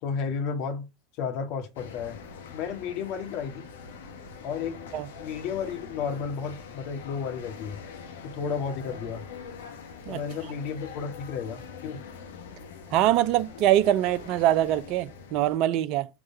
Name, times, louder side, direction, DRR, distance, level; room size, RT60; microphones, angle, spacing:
voice 1, 0.0-0.9 1.2-2.2 2.5-3.7 4.4-4.9 5.2-7.8 8.2-9.3 10.1-12.0, left 6 dB, 60° left, 1.8 m, -32 dB
sound 1, 1.8-15.6, left 5 dB, 80° left, 1.2 m, -44 dB
voice 2, 12.9-16.1, right 12 dB, 55° right, 0.6 m, -23 dB
6.2 x 3.7 x 5.0 m
hypercardioid pair, 90°, 0 cm